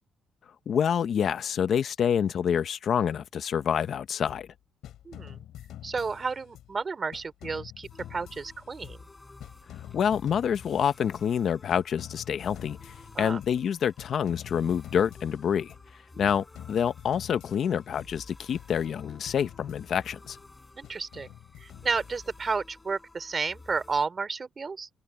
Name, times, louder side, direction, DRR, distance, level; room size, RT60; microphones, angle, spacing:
voice 1, 0.7-4.5 9.9-12.8 13.2-15.7 16.2-20.4, left 8 dB, 55° left, 1.0 m, -27 dB
sound 1, 4.3-4.6 4.8-6.8 7.1-9.2 9.4-11.4 11.7-13.7 14.0-15.9 16.3-18.3 18.5-20.4 20.8-22.5, left 12 dB, 80° left, 3.0 m, -47 dB
voice 2, 5.0-5.4 5.8-9.1 13.1-13.4 16.1-16.3 20.7-21.3 21.6-24.9, right 4 dB, 30° right, 3.3 m, -32 dB
sound 2, 7.9-24.1, left 2 dB, 15° left, 6.8 m, -52 dB
open air
cardioid pair, 125°, 0 cm